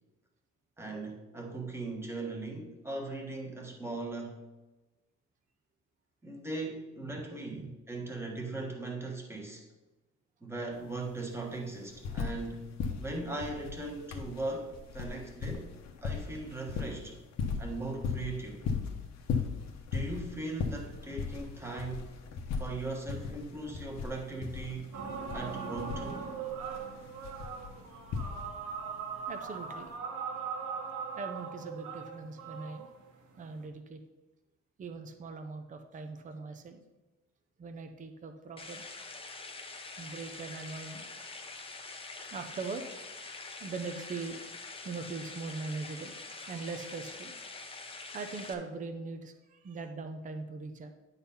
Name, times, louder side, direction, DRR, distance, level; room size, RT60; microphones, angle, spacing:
voice 1, 0.8-4.4 6.2-9.6 10.4-15.7 16.0-17.2 17.6-18.6 19.9-22.1 22.6-25.0 25.3-26.3, right 2 dB, 10° right, 0 dB, 1.3 m, -39 dB
sound 1, 10.7-10.8 11.1-12.5 12.8-28.8 29.8-29.9, left 5 dB, 65° left, 1.0 m, -37 dB
sound 2, 24.9-33.6, right 6 dB, 80° right, 1.6 m, -40 dB
voice 2, 29.3-29.9 31.2-32.9 33.4-34.0 34.8-36.8 37.6-38.8 39.4-39.5 40.0-41.9 42.3-42.8 43.1-47.3 47.8-50.9, right 4 dB, 25° right, 7 dB, 0.6 m, -41 dB
sound 3, 38.6-48.5, left 3 dB, 20° left, 0.7 m, -45 dB
9.8 x 4.1 x 5.5 m, 1.1 s
cardioid pair, 165°, 29 cm